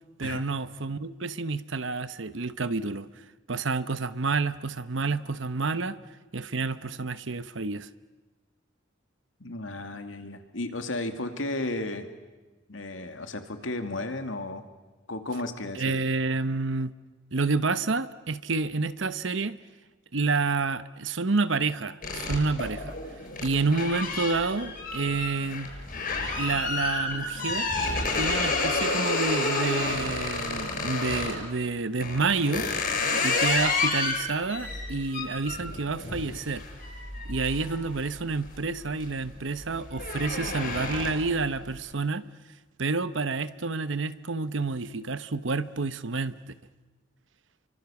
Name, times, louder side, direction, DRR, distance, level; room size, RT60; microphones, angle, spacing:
voice 1, 0.2-3.1 3.5-6.0 6.3-7.9 15.7-16.9 17.3-19.6 20.1-22.9 23.4-25.7 26.4-27.7 28.2-32.7 33.2-36.6 37.2-42.2 42.8-46.3, right 4 dB, 70° right, 13 dB, 1.0 m, -29 dB
voice 2, 9.4-12.1 12.7-14.7 15.1-16.0, left 2 dB, 80° left, 6 dB, 2.5 m, -34 dB
sound 1, 22.0-31.4 32.0-38.4 38.8-39.2 39.5-41.4, left 3 dB, 50° left, 7.0 m, -30 dB
30.0 x 24.5 x 7.1 m, 1.2 s
head